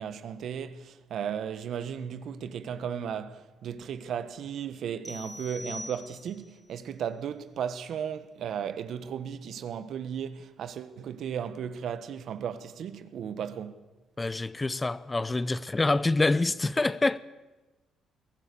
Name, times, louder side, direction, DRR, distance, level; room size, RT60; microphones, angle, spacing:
voice 1, 0.0-13.8, right 8 dB, 70° right, 1.4 m, -35 dB
sound 1, 5.0-6.6, left 1 dB, 5° left, 1.2 m, -42 dB
voice 2, 14.2-17.2, left 2 dB, 20° left, 0.7 m, -26 dB
22.0 x 18.0 x 7.0 m
cardioid pair, 90°, 0 cm